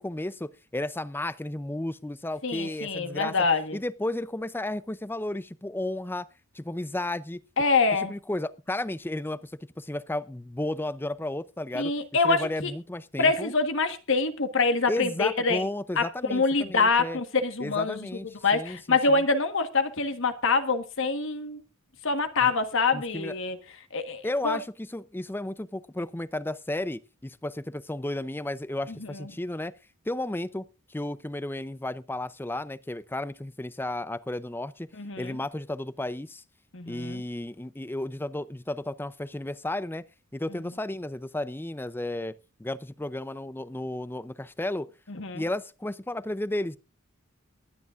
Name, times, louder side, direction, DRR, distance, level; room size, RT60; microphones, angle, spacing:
voice 1, 0.0-3.3 3.7-6.3 6.5-7.4 8.1-11.9 12.2-13.5 14.9-17.2 17.6-18.3 18.5-19.2 22.4-22.5 22.9-23.4 24.2-29.7 30.1-30.6 30.9-34.9 35.2-36.4 36.9-40.0 40.3-44.9 45.3-46.8, left 1 dB, 10° left, 0.5 m, -33 dB
voice 2, 2.4-3.8 7.6-8.1 11.7-12.7 13.2-15.6 16.0-18.1 18.4-21.6 22.0-23.6 23.9-24.6 29.0-29.3 35.0-35.4 36.7-37.2 45.2-45.4, left 4 dB, 65° left, 1.5 m, -25 dB
23.0 x 9.9 x 2.5 m
head